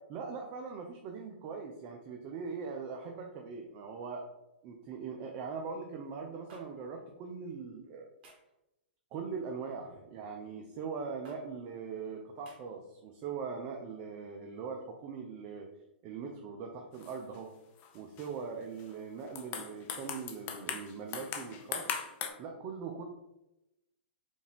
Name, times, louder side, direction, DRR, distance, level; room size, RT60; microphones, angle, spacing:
voice 1, 0.0-4.2 4.6-8.1 9.1-15.7 16.0-17.5 17.9-22.0 22.4-23.0, right 5 dB, 35° right, 2 dB, 0.5 m, -41 dB
sound 1, 6.5-6.6 8.2-8.5 9.8-10.1 11.2-11.4 12.4-12.6, right 1 dB, 55° right, 1.4 m, -55 dB
sound 2, 16.9-17.4 17.8-18.3 18.8-19.0 19.3-22.3, left 8 dB, 35° left, 0.6 m, -39 dB
5.0 x 2.5 x 3.4 m, 0.91 s
hypercardioid pair, 130°, 6 cm